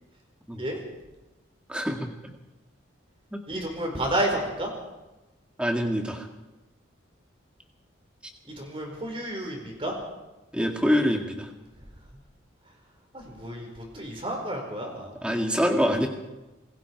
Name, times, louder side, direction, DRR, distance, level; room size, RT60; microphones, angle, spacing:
voice 1, 1.7-2.1 3.3-3.4 5.6-6.3 10.5-11.5 15.2-16.1, equal, 5° right, 3 dB, 2.0 m, -25 dB
voice 2, 3.5-4.7 8.4-9.9 13.1-15.1, right 1 dB, 25° right, 1 dB, 4.7 m, -31 dB
27.5 x 21.0 x 4.7 m, 1.1 s
head